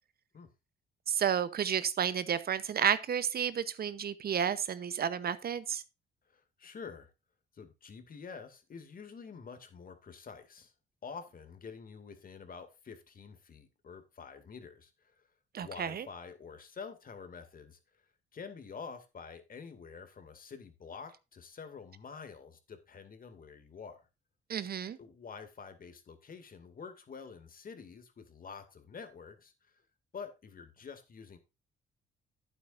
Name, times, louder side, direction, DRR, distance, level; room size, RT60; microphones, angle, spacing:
voice 1, 1.1-5.8 15.5-16.0 24.5-25.0, right 8 dB, 50° right, 0.8 m, -31 dB
voice 2, 6.3-7.1 7.5-10.7 11.0-15.3 15.6-18.0 18.3-24.0 25.0-29.7 30.1-31.4, left 5 dB, 45° left, 2.3 m, -48 dB
11.5 x 9.0 x 2.6 m
cardioid pair, 90°, 20 cm